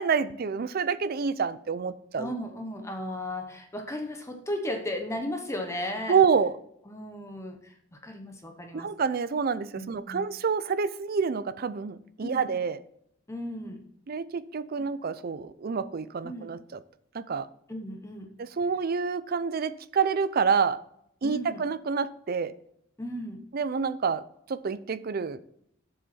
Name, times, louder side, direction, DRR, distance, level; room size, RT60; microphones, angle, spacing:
voice 1, 0.0-2.3 6.1-6.5 8.7-12.8 14.1-16.8 17.1-17.5 18.4-20.8 21.2-22.5 23.5-24.2 24.5-25.4, right 5 dB, 50° right, 15 dB, 0.5 m, -28 dB
voice 2, 2.2-6.2 6.9-8.9 9.7-10.3 12.2-12.5 13.3-13.8 16.2-16.5 17.7-18.3 21.2-21.6 23.0-23.4, left 1 dB, 15° left, 4 dB, 0.9 m, -35 dB
7.5 x 6.9 x 4.2 m, 0.72 s
head